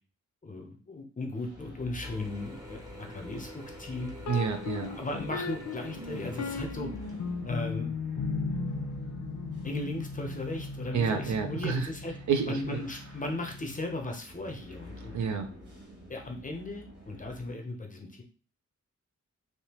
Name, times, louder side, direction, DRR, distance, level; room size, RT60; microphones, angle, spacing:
voice 1, 0.4-4.1 4.7-6.9 7.4-7.9 9.6-12.1 12.5-15.1 16.1-18.2, left 2 dB, 25° left, 2 dB, 0.6 m, -37 dB
sound 1, 1.4-17.5, left 1 dB, 35° right, 1.2 m, -50 dB
Mechanisms / Drill, 2.0-7.5, equal, 10° right, 0.7 m, -47 dB
sound 2, 4.2-14.0, left 4 dB, 65° left, 0.7 m, -37 dB
voice 2, 4.3-4.9 10.9-11.9 12.3-12.8 15.1-15.5, right 6 dB, 70° right, 5 dB, 0.6 m, -29 dB
3.5 x 2.7 x 2.8 m, 0.39 s
wide cardioid pair, 155°, 30 cm